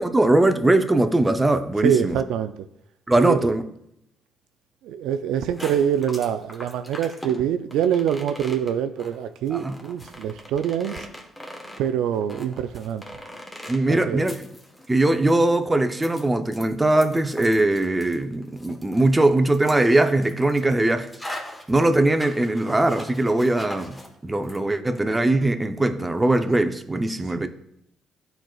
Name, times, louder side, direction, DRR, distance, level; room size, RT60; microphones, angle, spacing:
voice 1, 0.0-2.2 3.1-3.6 9.5-9.8 13.7-14.3 14.9-21.1 21.7-24.0 24.2-27.5, right 2 dB, 15° right, 0.6 m, -21 dB
voice 2, 1.8-2.5 3.2-3.5 4.8-11.0 11.8-13.0 13.9-14.2, right 9 dB, 90° right, 0.3 m, -25 dB
sound 1, 5.4-24.1 24.4-24.6, left 1 dB, 15° left, 1.1 m, -41 dB
11.5 x 4.5 x 2.3 m
cardioid pair, 90°, 0 cm